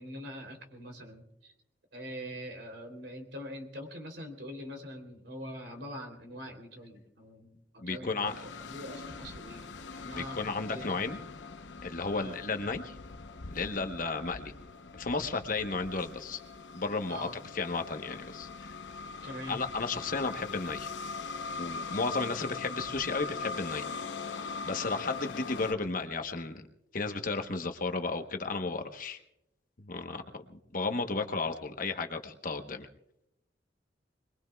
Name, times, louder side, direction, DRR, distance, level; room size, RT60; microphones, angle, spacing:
voice 1, 0.0-1.5 1.9-10.4 10.7-10.8 12.1-12.4 17.1-17.4 19.2-19.6, equal, 70° right, 4 dB, 3.3 m, -43 dB
voice 2, 7.8-8.3 10.1-11.2 11.8-13.0 13.5-14.5 14.9-16.4 16.7-17.3 17.5-18.7 19.5-20.9 21.6-23.9 24.6-26.6 26.9-29.2 29.8-30.2 30.5-32.9, left 3 dB, 50° left, 6 dB, 1.0 m, -33 dB
sound 1, 8.2-25.7, left 4 dB, 85° left, 0.8 m, -41 dB
25.5 x 22.0 x 2.3 m, 0.81 s
head